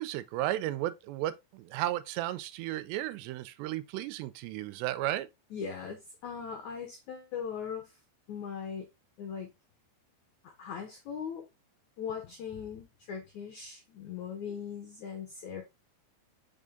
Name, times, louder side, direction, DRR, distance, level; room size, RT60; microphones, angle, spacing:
voice 1, 0.0-5.3, right 14 dB, 85° right, 2.7 m, -34 dB
voice 2, 5.5-7.8 8.3-8.8 9.2-9.5 10.4-11.5 12.0-15.6, left 7 dB, 80° left, 1.7 m, -39 dB
5.4 x 5.0 x 3.6 m
omnidirectional pair, 5.0 m